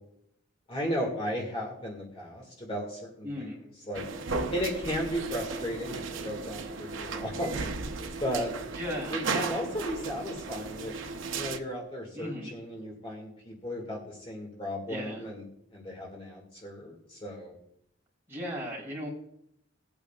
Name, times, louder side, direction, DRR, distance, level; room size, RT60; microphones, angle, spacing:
voice 1, 0.7-3.5 3.9-4.0 4.5-7.7 8.2-8.5 9.1-10.9 11.3-15.4 15.7-17.6, equal, 30° left, -1 dB, 2.0 m, -35 dB
voice 2, 3.2-3.6 8.7-9.3 12.1-12.5 14.9-15.3 18.3-19.1, equal, 15° right, -4 dB, 3.8 m, -36 dB
sound 1, 3.9-11.6, right 4 dB, 80° right, 0.8 m, -35 dB
18.5 x 8.8 x 2.4 m, 0.74 s
head